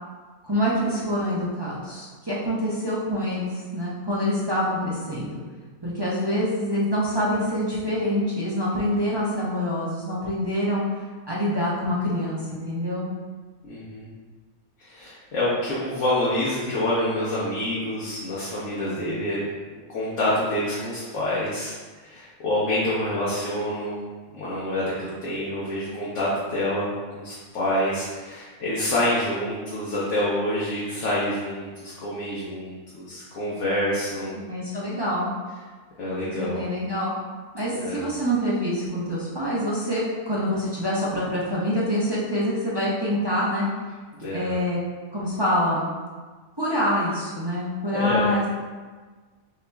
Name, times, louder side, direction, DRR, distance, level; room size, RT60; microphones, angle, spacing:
voice 1, 0.4-5.4 5.8-10.8 11.3-13.1 34.3-35.3 36.4-37.1 37.5-43.7 44.3-44.8 45.1-45.9 46.6-48.5, equal, 25° right, -8 dB, 0.6 m, -26 dB
voice 2, 13.7-14.1 14.8-19.4 19.9-24.0 24.4-26.9 27.1-34.4 36.0-36.6 37.7-38.1 44.2-44.6 48.0-48.3, left 1 dB, 60° left, -8 dB, 1.2 m, -27 dB
6.6 x 2.9 x 2.3 m, 1.4 s
omnidirectional pair, 1.5 m